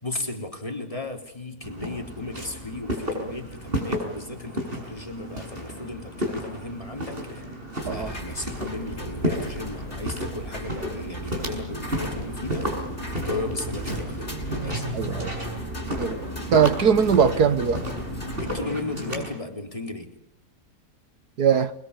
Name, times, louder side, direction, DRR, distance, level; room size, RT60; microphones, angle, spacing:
voice 1, 0.0-12.8 13.2-14.9 18.4-20.1, left 2 dB, 20° left, 3.8 m, -35 dB
Walk footsteps, 1.6-19.3, equal, 35° right, 7.0 m, -32 dB
sound 1, 7.8-18.6, equal, 40° left, 7.4 m, -38 dB
voice 2, 14.9-15.3 15.9-16.2 16.5-17.8 21.4-21.7, right 7 dB, 75° right, 1.8 m, -20 dB
29.0 x 22.0 x 8.3 m
omnidirectional pair, 1.7 m